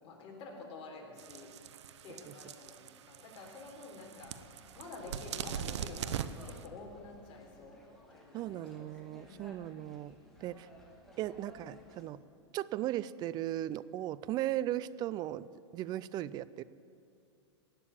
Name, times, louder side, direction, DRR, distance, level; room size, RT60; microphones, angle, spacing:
voice 1, 0.0-1.5 2.0-4.3 4.8-6.2 6.4-7.8 8.1-8.9 9.2-9.5, left 3 dB, 40° left, 0 dB, 3.7 m, -49 dB
sound 1, 1.2-6.7, right 9 dB, 75° right, 0.8 m, -42 dB
sound 2, 4.3-12.1, equal, ahead, 2.3 m, -58 dB
voice 2, 8.3-10.7 11.2-12.2 12.5-15.5 15.7-16.6, right 13 dB, 30° right, 18 dB, 0.4 m, -37 dB
18.0 x 6.8 x 8.8 m, 2.6 s
hypercardioid pair, 130°, 15 cm